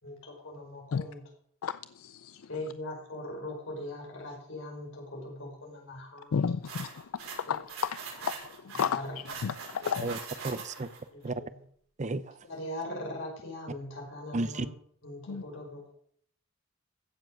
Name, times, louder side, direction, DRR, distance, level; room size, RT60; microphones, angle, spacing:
voice 1, 0.0-1.3 2.5-6.3 8.7-9.1 9.8-9.9 11.1-11.6 12.5-14.7 15.0-15.9, left 1 dB, 65° left, 4.8 m, -40 dB
voice 2, 1.6-2.5 6.3-9.0 9.4-10.1 15.3-15.4, left 6 dB, 80° left, 0.4 m, -33 dB
sound 1, 6.7-11.0, right 5 dB, 85° right, 6.1 m, -42 dB
voice 3, 10.4-10.9 11.2-11.3 12.0-12.2 14.3-14.7, right 2 dB, 35° right, 0.6 m, -31 dB
15.5 x 7.3 x 6.5 m
head